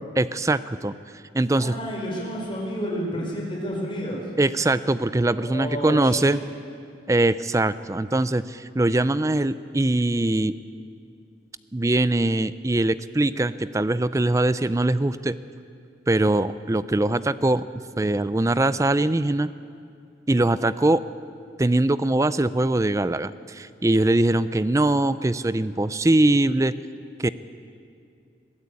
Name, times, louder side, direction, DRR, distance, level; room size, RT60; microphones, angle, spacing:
voice 1, 0.2-0.9 1.3-1.8 4.4-6.4 7.1-10.6 11.7-15.4 16.1-17.6 18.0-19.5 20.3-21.0 21.6-26.7 27.2-27.3, right 2 dB, 15° right, 15 dB, 0.4 m, -22 dB
voice 2, 1.5-4.3 5.4-6.3, equal, 25° left, -2 dB, 4.8 m, -30 dB
22.0 x 14.0 x 8.4 m, 2.4 s
head